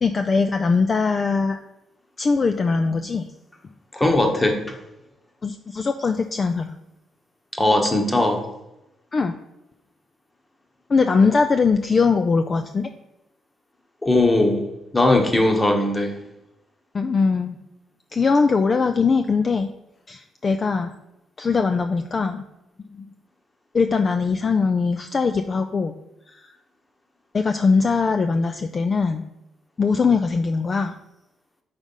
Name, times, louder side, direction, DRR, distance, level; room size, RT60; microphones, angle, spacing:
voice 1, 0.0-1.6 2.2-3.3 5.4-6.7 9.1-9.4 10.9-12.9 16.9-17.6 18.1-19.7 20.1-20.9 21.4-22.4 22.9-23.1 23.7-25.9 26.3-26.4 27.3-29.3 29.8-30.9, left 4 dB, 40° left, 7 dB, 0.3 m, -21 dB
voice 2, 3.9-4.8 7.6-8.4 14.0-14.7 14.9-16.2, left 2 dB, 15° left, 4 dB, 1.0 m, -19 dB
5.2 x 3.5 x 5.4 m, 0.90 s
cardioid pair, 90°, 0 cm